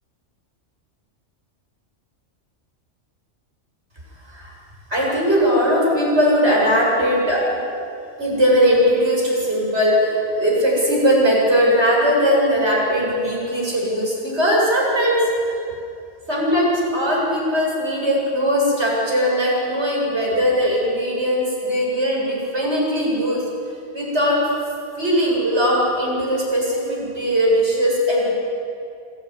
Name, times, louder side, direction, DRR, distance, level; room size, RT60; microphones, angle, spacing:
voice 1, 4.9-7.4 8.2-15.2 15.5-15.6 16.3-23.4 23.9-24.4 25.0-28.3, equal, 65° right, -4 dB, 7.9 m, -19 dB
26.0 x 17.0 x 9.8 m, 2.5 s
omnidirectional pair, 1.2 m